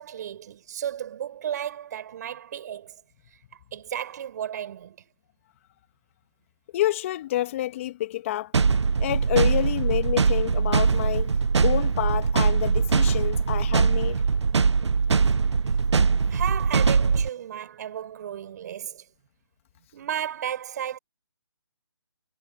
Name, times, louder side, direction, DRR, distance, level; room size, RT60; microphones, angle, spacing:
voice 1, 0.0-3.0 3.7-5.0 16.3-19.0 19.9-21.0, right 10 dB, 40° right, 6.7 m, -33 dB
voice 2, 6.7-8.5 9.0-11.3 11.6-14.2, left 14 dB, 30° left, 2.0 m, -28 dB
sound 1, 8.5-17.3, right 5 dB, 80° right, 0.8 m, -22 dB
hypercardioid pair, 155°, 14 cm